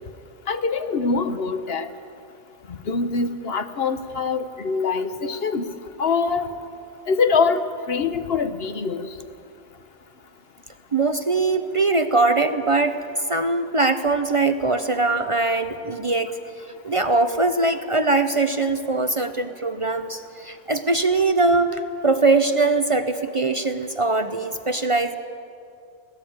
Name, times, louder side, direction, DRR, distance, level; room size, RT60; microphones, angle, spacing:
voice 1, 0.5-1.9 2.7-5.7 6.0-6.5 7.1-9.1, left 4 dB, 65° left, 10 dB, 1.2 m, -24 dB
voice 2, 10.9-13.0 13.3-16.4 16.8-25.2, right 3 dB, 35° right, 9 dB, 0.7 m, -21 dB
21.5 x 16.5 x 8.7 m, 2.6 s
omnidirectional pair, 1.1 m